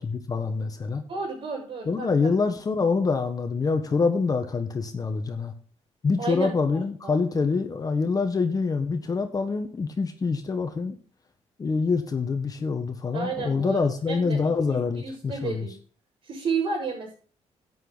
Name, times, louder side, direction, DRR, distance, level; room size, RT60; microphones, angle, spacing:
voice 1, 0.0-1.0 1.9-5.5 6.0-11.0 11.6-15.7, left 4 dB, 30° left, 7 dB, 1.4 m, -26 dB
voice 2, 1.1-2.1 6.2-7.2 13.1-15.7 16.2-17.2, right 4 dB, 55° right, -5 dB, 5.5 m, -32 dB
11.0 x 9.3 x 4.0 m, 0.41 s
cardioid pair, 125°, 12 cm